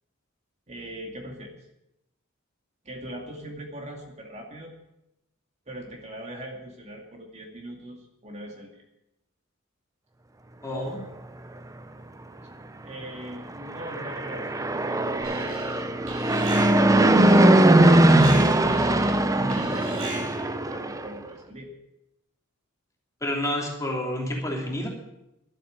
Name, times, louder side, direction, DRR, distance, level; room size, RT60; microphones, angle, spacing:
voice 1, 0.7-1.6 2.8-4.7 5.7-8.8 10.7-11.0 12.8-15.6 19.5-20.4 20.7-21.7, right 1 dB, 35° right, 1 dB, 2.4 m, -40 dB
voice 2, 10.6-11.0 19.3-19.6 23.2-24.9, left 1 dB, 15° left, -1 dB, 2.9 m, -29 dB
Fixed-wing aircraft airplane, 13.7-21.1, right 1 dB, 15° right, 0.7 m, -20 dB
Alarm, 15.2-15.8 16.1-20.5, right 1 dB, 85° right, 6.5 m, -38 dB
12.5 x 9.2 x 9.0 m, 0.86 s
head